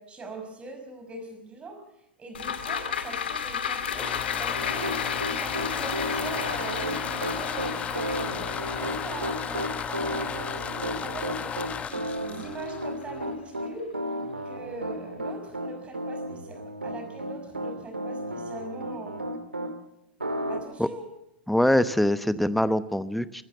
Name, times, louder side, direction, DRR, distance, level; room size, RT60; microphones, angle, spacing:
voice 1, 0.0-1.8 2.2-4.1 4.4-5.0 5.3-11.5 11.9-13.9 14.4-19.2 20.5-21.1, right 3 dB, 20° right, 6 dB, 5.7 m, -41 dB
sound 1, 2.3-12.9 13.2-13.3, left 7 dB, 70° left, 2.2 m, -34 dB
sound 2, 3.7-13.5, left 7 dB, 20° left, 1.1 m, -35 dB
Piano, 4.5-19.7 20.2-20.6, right 1 dB, 85° right, 2.0 m, -33 dB
voice 2, 21.5-23.4, left 1 dB, ahead, 15 dB, 0.9 m, -23 dB
25.0 x 15.0 x 7.1 m, 0.85 s
figure-of-eight pair, 95°, 6 cm